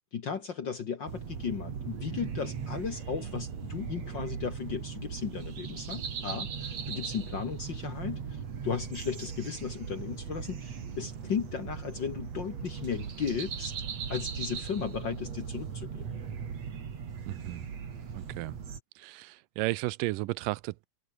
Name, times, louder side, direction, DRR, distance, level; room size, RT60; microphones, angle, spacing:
voice 1, 0.1-13.7 14.1-16.1, left 6 dB, 50° left, 1.5 m, -35 dB
sound 1, 1.1-18.8, right 7 dB, 55° right, 3.8 m, -38 dB
voice 2, 17.3-17.7 18.1-18.6 19.0-20.9, right 20 dB, 90° right, 2.3 m, -34 dB
omnidirectional pair, 3.7 m